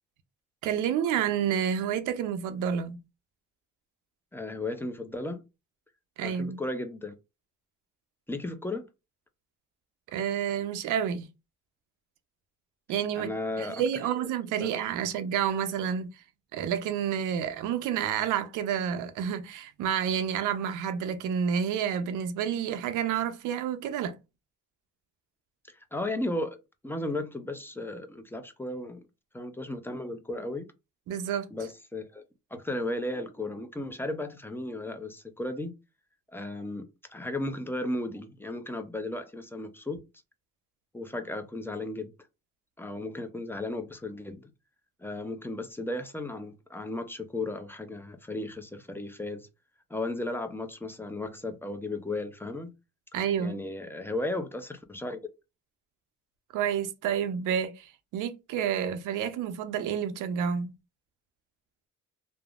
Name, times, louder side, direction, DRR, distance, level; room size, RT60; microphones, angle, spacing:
voice 1, 0.6-3.0 6.2-6.6 10.1-11.3 12.9-13.3 13.6-16.1 16.5-24.2 31.1-31.5 53.1-53.6 56.5-60.7, right 8 dB, 85° right, 0.5 m, -29 dB
voice 2, 4.3-5.4 6.2-7.1 8.3-8.9 13.2-13.8 14.1-14.3 14.6-14.7 25.7-26.6 26.8-29.1 29.3-30.7 31.5-32.2 32.5-35.7 36.3-40.0 40.9-42.1 42.8-44.5 45.0-49.5 49.9-52.7 53.4-55.2, left 2 dB, 10° left, 0.4 m, -35 dB
3.4 x 2.0 x 2.3 m
cardioid pair, 90°, 30 cm